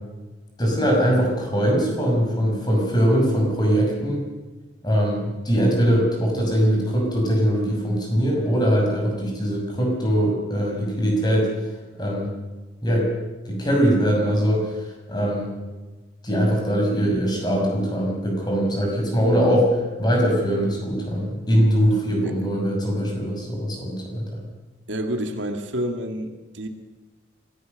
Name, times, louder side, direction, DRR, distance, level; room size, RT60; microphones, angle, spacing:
voice 1, 0.6-4.2 4.8-11.5 11.9-12.3 12.8-13.1 13.5-15.5 16.2-24.4, equal, 20° left, 0 dB, 6.0 m, -21 dB
voice 2, 24.9-26.7, right 1 dB, 80° right, 5 dB, 2.3 m, -29 dB
24.5 x 16.0 x 6.7 m, 1.2 s
head